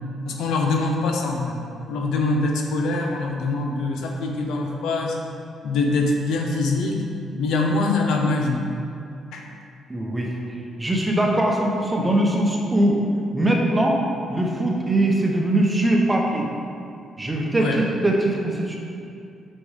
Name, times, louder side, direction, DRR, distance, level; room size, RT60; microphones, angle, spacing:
voice 1, 0.3-1.6 1.9-5.2 5.6-7.1 7.4-8.7 9.3-9.4 17.6-17.8, left 3 dB, 85° left, 1 dB, 0.7 m, -23 dB
voice 2, 9.9-10.3 10.8-13.0 13.3-14.0 14.3-16.5 17.2-18.8, right 1 dB, 15° right, -1 dB, 1.0 m, -21 dB
5.5 x 4.2 x 5.0 m, 2.5 s
cardioid pair, 90°, 0 cm